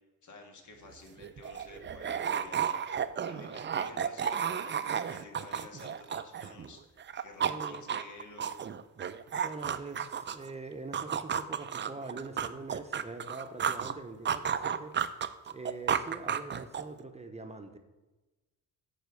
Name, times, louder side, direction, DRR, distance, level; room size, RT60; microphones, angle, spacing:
voice 1, 0.2-2.8 3.2-8.6, left 3 dB, 60° left, 3 dB, 1.9 m, -51 dB
sound 1, 0.9-6.7 7.0-10.5 10.9-13.9 14.3-17.0, right 8 dB, 35° right, 0.5 m, -33 dB
voice 2, 7.4-7.8 9.4-15.0 15.4-17.8, right 3 dB, 20° right, 6 dB, 0.8 m, -43 dB
9.4 x 4.3 x 6.8 m, 1.2 s
cardioid pair, 90°, 33 cm